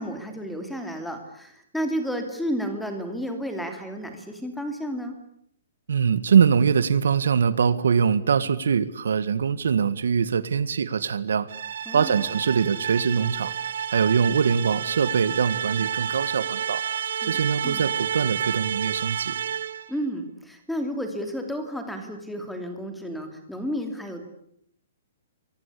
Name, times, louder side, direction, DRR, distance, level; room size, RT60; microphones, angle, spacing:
voice 1, 0.0-5.2 11.9-12.3 17.2-17.9 19.9-24.2, equal, ahead, 6 dB, 2.8 m, -32 dB
voice 2, 5.9-11.5 11.9-13.5 13.9-16.8 17.3-19.4, right 6 dB, 85° right, 15 dB, 1.8 m, -23 dB
sound 1, 11.5-19.9, right 8 dB, 55° right, 1.8 m, -30 dB
27.5 x 24.0 x 8.6 m, 0.68 s
hypercardioid pair, 180°, 0 cm